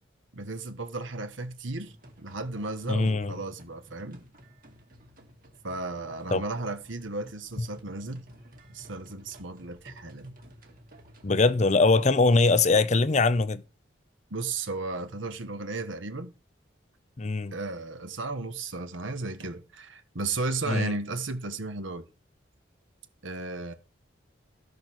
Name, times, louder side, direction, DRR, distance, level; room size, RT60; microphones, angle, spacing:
voice 1, 0.3-4.2 5.6-8.2 8.7-10.3 14.3-16.3 17.5-22.1 23.2-23.7, right 3 dB, 85° right, 1.3 m, -34 dB
sound 1, 1.8-12.7, equal, 45° right, 2.0 m, -53 dB
voice 2, 2.9-3.3 6.3-6.4 11.2-13.6 17.2-17.5 20.7-20.9, left 3 dB, 35° left, 0.6 m, -22 dB
13.0 x 5.1 x 6.1 m
head